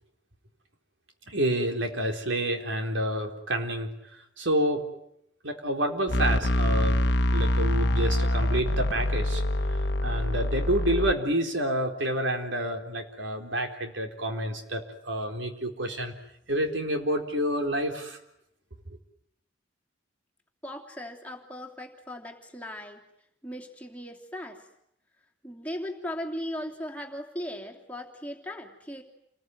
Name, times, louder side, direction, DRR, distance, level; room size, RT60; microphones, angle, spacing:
voice 1, 1.3-3.9 4.4-4.8 5.4-7.0 7.3-16.1 16.5-18.2, right 1 dB, 75° right, 4 dB, 3.9 m, -29 dB
sound 1, 6.1-11.1, left 1 dB, 60° left, 1.1 m, -25 dB
voice 2, 20.6-23.0 23.4-24.7 25.4-29.0, left 1 dB, 5° left, 1 dB, 3.0 m, -38 dB
29.0 x 21.0 x 9.6 m, 0.77 s
head